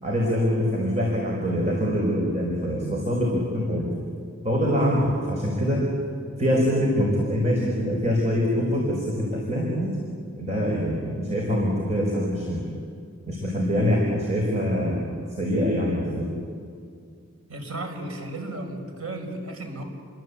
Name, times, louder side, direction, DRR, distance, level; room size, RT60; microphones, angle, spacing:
voice 1, 0.0-3.9 4.4-5.9 6.4-10.0 10.4-12.6 13.3-15.0 15.4-16.3, equal, 30° right, -2 dB, 5.2 m, -24 dB
voice 2, 17.5-19.8, right 2 dB, 85° right, 3 dB, 5.7 m, -34 dB
30.0 x 23.0 x 8.6 m, 2.2 s
head